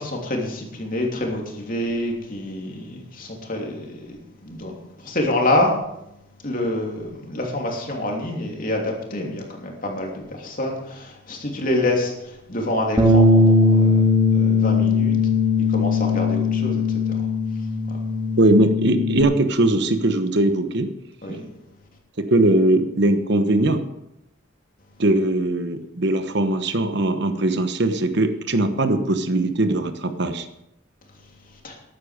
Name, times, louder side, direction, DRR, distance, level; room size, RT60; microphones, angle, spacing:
voice 1, 0.0-4.2 4.4-5.8 6.4-14.0 14.3-15.2 15.7-16.8 17.1-17.2 17.9-18.0 21.2-21.4 31.6-31.7, left 1 dB, 40° left, 0 dB, 3.1 m, -27 dB
Bass guitar, 13.0-19.2, left 3 dB, 15° right, 2.0 m, -19 dB
voice 2, 18.4-20.9 21.3-21.4 22.2-23.8 25.0-30.5, right 2 dB, 55° right, 9 dB, 1.1 m, -20 dB
14.0 x 11.5 x 5.2 m, 0.85 s
head